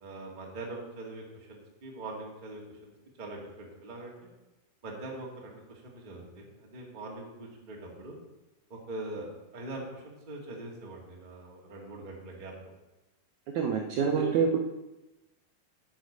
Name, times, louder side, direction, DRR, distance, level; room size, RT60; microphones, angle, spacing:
voice 1, 0.0-2.9 3.2-4.3 4.8-8.2 8.7-12.7 14.0-14.3, right 2 dB, 25° right, -1 dB, 1.1 m, -42 dB
voice 2, 13.5-14.6, right 6 dB, 80° right, 3 dB, 1.7 m, -26 dB
10.0 x 6.3 x 7.8 m, 1.0 s
omnidirectional pair, 4.4 m